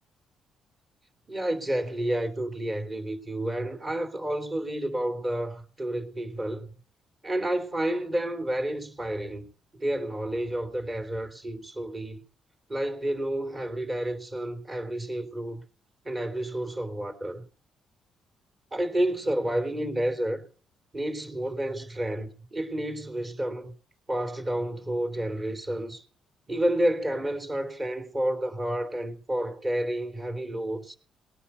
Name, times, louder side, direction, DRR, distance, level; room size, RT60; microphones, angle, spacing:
voice 1, 1.3-6.7 7.2-9.5 9.8-12.2 12.7-15.6 16.0-17.4 18.7-20.4 20.9-23.7 24.1-26.0 26.5-31.0, right 1 dB, 25° right, 3.4 m, -30 dB
19.5 x 10.0 x 5.7 m
cardioid pair, 90°, 0 cm